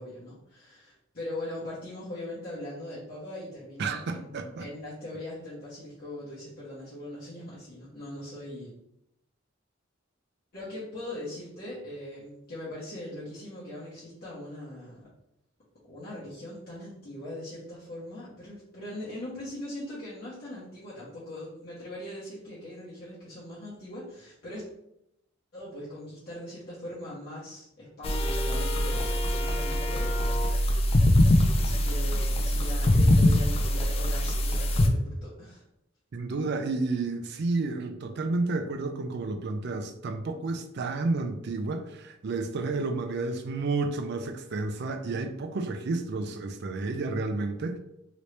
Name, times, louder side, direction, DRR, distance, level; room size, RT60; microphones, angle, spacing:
voice 1, 0.0-8.7 10.5-15.1 15.9-24.7 25.5-31.0 31.6-35.6, left 1 dB, 50° left, -10 dB, 1.1 m, -41 dB
voice 2, 3.8-4.7 36.1-47.8, right 3 dB, 55° right, 7 dB, 0.4 m, -31 dB
sound 1, 28.0-34.9, left 1 dB, 30° left, 0.3 m, -23 dB
3.0 x 2.7 x 3.2 m, 0.81 s
head